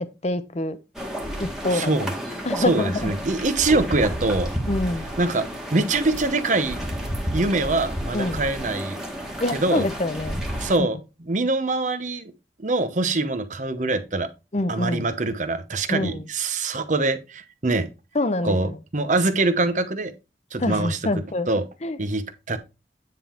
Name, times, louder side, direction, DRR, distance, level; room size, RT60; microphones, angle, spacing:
voice 1, 0.2-0.8 1.4-1.9 2.4-3.1 4.7-5.1 8.1-8.4 9.4-10.4 14.5-15.1 15.9-16.2 18.1-18.6 20.6-21.5 21.8-22.0, left 2 dB, 40° left, 0.7 m, -25 dB
sound 1, 0.9-10.8, equal, 5° right, 1.5 m, -31 dB
voice 2, 1.7-2.1 2.6-4.5 5.2-5.5 5.7-6.8 7.3-9.0 9.5-9.9 10.6-12.3 12.6-14.3 14.7-17.9 18.4-20.1 20.5-21.0 21.5-21.6 22.0-22.6, right 2 dB, 45° right, 0.9 m, -24 dB
9.5 x 3.7 x 4.4 m
head